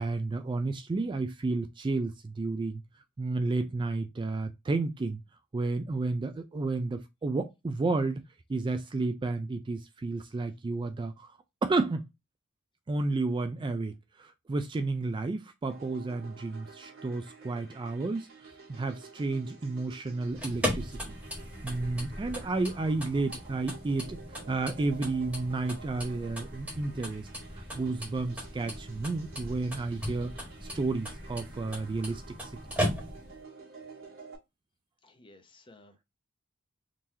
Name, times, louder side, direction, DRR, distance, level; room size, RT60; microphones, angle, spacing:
voice 1, 0.0-2.8 3.2-5.2 5.5-8.2 8.5-11.3 11.6-12.1 12.9-21.1 21.6-24.2 24.5-27.3 27.5-30.3 30.7-32.5, right 3 dB, 20° right, 0.3 m, -31 dB
sound 1, 15.7-34.4, right 4 dB, 65° right, 1.4 m, -51 dB
sound 2, 20.2-33.4, equal, 5° right, 1.3 m, -38 dB
voice 2, 35.0-36.0, left 2 dB, 25° left, 0.7 m, -56 dB
3.8 x 3.0 x 2.6 m
head